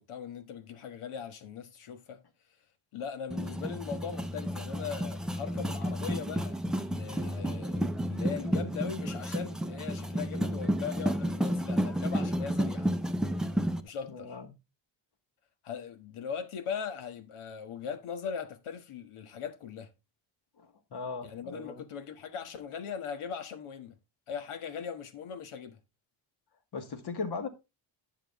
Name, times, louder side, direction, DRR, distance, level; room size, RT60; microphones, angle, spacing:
voice 1, 0.0-2.2 2.9-12.9 13.8-14.4 15.6-19.9 21.2-24.0 24.3-25.8, left 7 dB, 85° left, 1.6 m, -40 dB
sound 1, 3.3-13.8, equal, ahead, 0.5 m, -31 dB
voice 2, 14.1-14.5 20.6-21.8 26.7-27.5, left 4 dB, 50° left, 1.9 m, -38 dB
10.5 x 6.2 x 3.5 m
wide cardioid pair, 160°, 49 cm